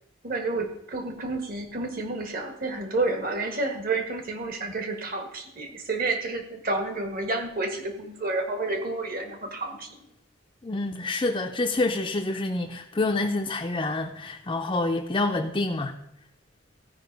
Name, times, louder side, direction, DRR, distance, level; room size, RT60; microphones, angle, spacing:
voice 1, 0.2-10.0, right 3 dB, 45° right, 5 dB, 1.5 m, -30 dB
voice 2, 10.6-16.0, left 2 dB, 25° left, 1 dB, 0.5 m, -27 dB
14.5 x 5.1 x 5.2 m, 0.82 s
head